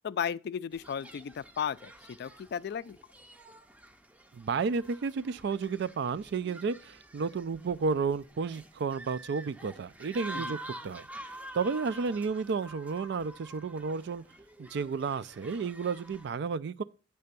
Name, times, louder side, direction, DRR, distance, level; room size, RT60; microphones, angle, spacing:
voice 1, 0.0-3.0 10.3-10.6, left 7 dB, 60° left, 0.3 m, -35 dB
sound 1, 0.7-16.3, right 1 dB, 10° right, 0.5 m, -48 dB
voice 2, 4.3-10.6 10.8-11.1 11.5-14.2 14.6-16.8, right 5 dB, 65° right, 0.4 m, -32 dB
9.4 x 3.4 x 6.7 m
head